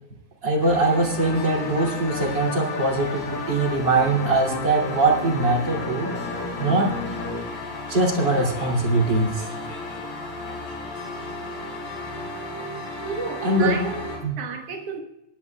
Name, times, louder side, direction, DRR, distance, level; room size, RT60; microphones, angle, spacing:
voice 1, 0.4-6.1 6.6-6.9 7.9-9.5 13.4-13.8 14.2-14.3, right 2 dB, 30° right, 2.7 m, -22 dB
sound 1, 0.6-14.2, left 2 dB, 60° left, 6.9 m, -35 dB
sound 2, 1.1-7.5 8.2-10.1 10.4-10.9, left 3 dB, 85° left, 4.7 m, -34 dB
voice 2, 13.0-15.0, right 5 dB, 65° right, 1.6 m, -32 dB
25.0 x 11.5 x 2.3 m
omnidirectional pair, 4.4 m